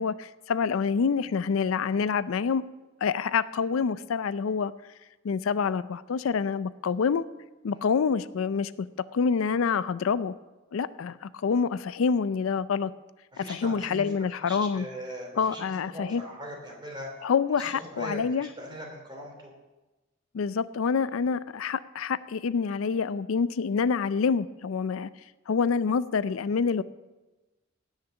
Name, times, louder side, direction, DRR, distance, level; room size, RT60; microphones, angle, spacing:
voice 1, 0.0-2.6 3.0-4.7 5.2-7.3 7.6-8.9 9.1-10.3 10.7-12.9 13.4-14.8 15.4-16.2 17.2-18.5 20.3-25.1 25.5-26.8, left 5 dB, 85° left, 16 dB, 0.4 m, -27 dB
voice 2, 13.3-14.1 14.4-17.1 17.5-19.5, equal, 25° right, 0 dB, 3.1 m, -40 dB
17.5 x 6.6 x 6.0 m, 1.1 s
head